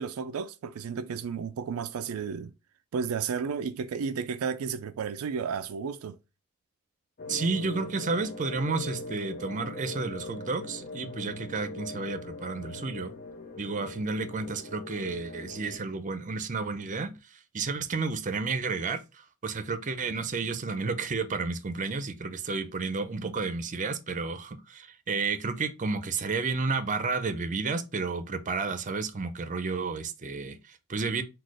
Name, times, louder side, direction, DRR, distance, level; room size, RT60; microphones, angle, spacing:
voice 1, 0.0-2.5 2.9-6.2, right 6 dB, 85° right, 0.4 m, -33 dB
sound 1, 7.2-15.8, left 2 dB, 45° left, 0.7 m, -41 dB
voice 2, 7.3-13.1 13.6-31.2, right 4 dB, 35° right, 0.6 m, -31 dB
4.1 x 2.4 x 4.7 m
head